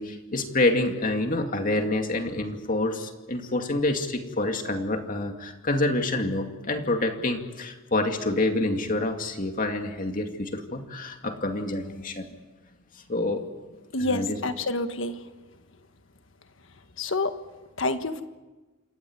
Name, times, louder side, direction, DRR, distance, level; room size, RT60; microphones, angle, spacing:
voice 1, 0.0-12.3 13.1-13.5 14.0-14.4, left 2 dB, 40° left, 2.4 m, -27 dB
voice 2, 13.9-15.2 17.0-17.3 17.8-18.2, left 2 dB, 65° left, 1.6 m, -27 dB
28.0 x 14.5 x 9.8 m
head